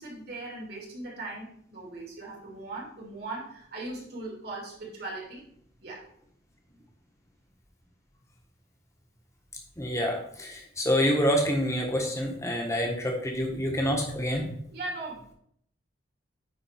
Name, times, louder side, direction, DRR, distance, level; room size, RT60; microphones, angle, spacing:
voice 1, 0.0-5.4 5.8-6.0 14.7-15.3, right 2 dB, 55° right, -3 dB, 2.8 m, -39 dB
voice 2, 9.8-14.5, equal, 15° left, 1 dB, 1.5 m, -27 dB
9.6 x 4.5 x 4.5 m, 0.66 s
head